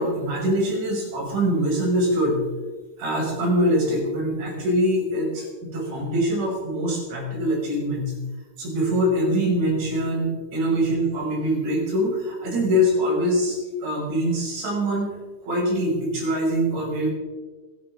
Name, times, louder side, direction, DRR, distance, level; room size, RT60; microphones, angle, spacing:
voice 1, 0.0-2.5 3.0-8.1 8.6-15.2 15.4-17.1, equal, 85° right, -3 dB, 8.3 m, -23 dB
27.5 x 12.5 x 3.7 m, 1.3 s
omnidirectional pair, 5.0 m